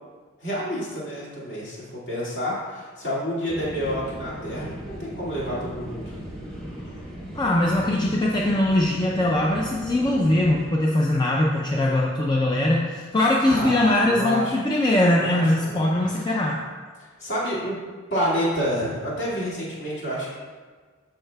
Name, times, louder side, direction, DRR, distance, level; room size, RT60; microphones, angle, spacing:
voice 1, 0.4-6.2 13.4-14.6 15.1-16.3 17.2-17.8 18.1-20.3, equal, 50° left, -7 dB, 2.1 m, -29 dB
sound 1, 3.5-10.7, equal, ahead, 1.1 m, -37 dB
voice 2, 7.3-16.6, left 1 dB, 20° left, -2 dB, 0.4 m, -21 dB
12.5 x 4.7 x 2.2 m, 1.5 s
head